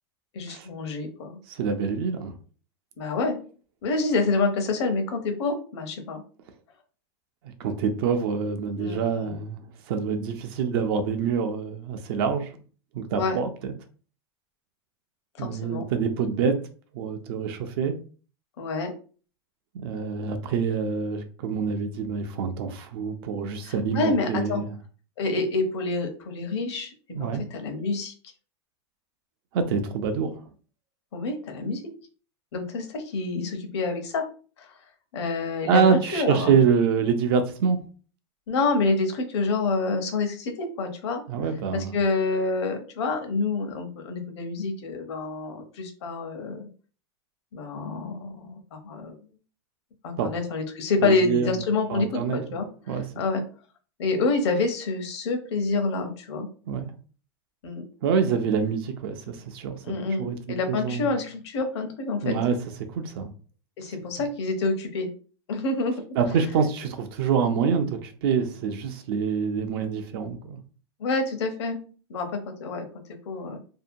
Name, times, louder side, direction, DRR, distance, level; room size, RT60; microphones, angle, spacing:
voice 1, 0.3-1.4 3.0-3.4 3.8-6.2 8.7-9.3 13.1-13.4 15.4-15.9 18.6-18.9 23.6-24.6 25.2-28.1 31.1-31.8 32.5-34.2 34.6-34.8 35.1-36.6 38.5-41.2 41.7-46.7 47.5-49.1 50.0-53.4 54.0-56.5 57.6-57.9 59.8-62.3 63.8-65.1 65.5-65.9 71.0-71.8 72.1-72.9 73.3-73.6, left 3 dB, 70° left, 5 dB, 0.8 m, -27 dB
voice 2, 1.5-2.3 7.6-9.6 9.9-12.5 12.9-13.7 15.4-16.6 16.9-17.9 19.7-24.7 27.1-27.4 29.5-30.5 35.7-37.8 41.3-42.0 50.2-50.3 51.0-51.5 51.9-52.4 52.9-53.2 56.7-56.9 58.0-61.1 62.2-62.6 62.9-63.3 66.2-70.6, right 6 dB, 55° right, 7 dB, 0.5 m, -26 dB
2.7 x 2.1 x 2.6 m, 0.39 s
supercardioid pair, 145°, 15 cm